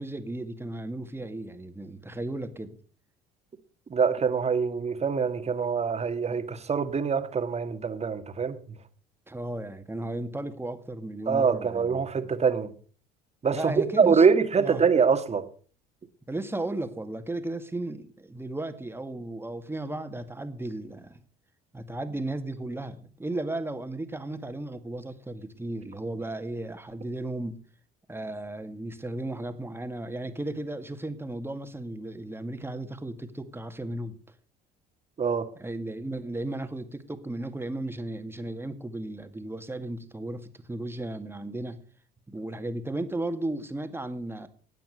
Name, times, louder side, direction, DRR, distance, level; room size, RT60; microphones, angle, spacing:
voice 1, 0.0-2.8 9.3-12.3 13.5-14.3 14.6-14.8 16.3-21.2 21.7-27.6 28.1-34.2 35.6-41.8 42.3-44.5, right 2 dB, 10° right, 2.0 m, -35 dB
voice 2, 3.9-8.6 11.3-12.7 13.4-15.4 35.2-35.5, right 5 dB, 30° right, 1.9 m, -24 dB
13.5 x 9.1 x 6.6 m
hypercardioid pair, 65°, 20 cm